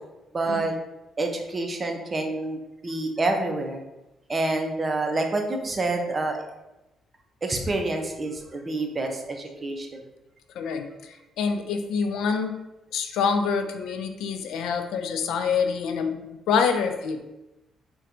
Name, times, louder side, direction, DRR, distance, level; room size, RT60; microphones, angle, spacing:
voice 1, 0.3-0.7 1.2-3.8 4.3-6.5 7.4-10.0, right 2 dB, 30° right, 3 dB, 0.5 m, -28 dB
voice 2, 10.6-12.6 12.9-17.2, left 6 dB, 85° left, 6 dB, 0.3 m, -26 dB
4.1 x 2.2 x 2.5 m, 0.97 s
cardioid pair, 90°, 0 cm